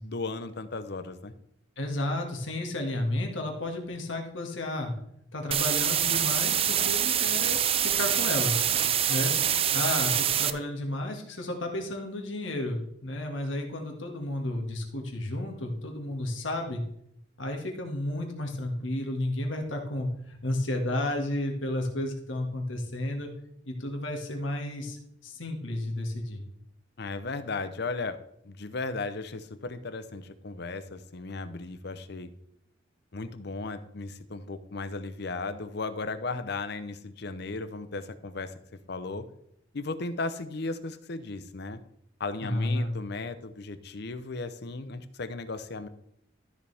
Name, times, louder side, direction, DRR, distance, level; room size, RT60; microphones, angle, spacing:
voice 1, 0.0-1.3 27.0-28.2 28.4-32.3 33.1-38.5 38.9-39.3 39.7-41.8 42.2-45.9, left 3 dB, 60° left, 12 dB, 0.7 m, -36 dB
voice 2, 1.8-4.9 5.3-8.6 9.1-9.3 9.7-16.8 17.4-23.3 23.7-26.4 42.4-43.0, left 1 dB, 80° left, 2 dB, 1.9 m, -32 dB
sound 1, 5.5-10.5, right 9 dB, 30° right, 0.4 m, -25 dB
13.0 x 6.9 x 3.5 m, 0.73 s
head